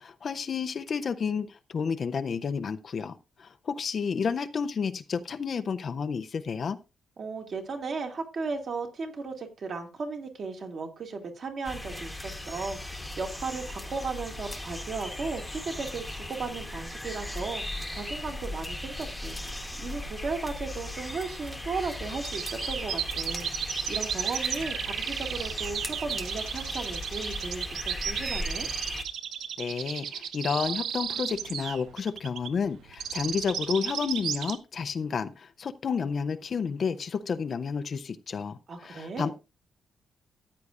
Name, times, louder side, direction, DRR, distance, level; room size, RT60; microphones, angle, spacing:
voice 1, 0.0-6.8 29.6-39.3, left 6 dB, 40° left, 0.5 m, -31 dB
voice 2, 7.2-28.7 38.7-39.3, right 4 dB, 40° right, 2.1 m, -36 dB
sound 1, 11.6-29.0, left 1 dB, 5° left, 1.1 m, -37 dB
sound 2, 22.2-34.6, right 8 dB, 80° right, 0.9 m, -34 dB
14.5 x 9.5 x 2.5 m
wide cardioid pair, 180°, 0 cm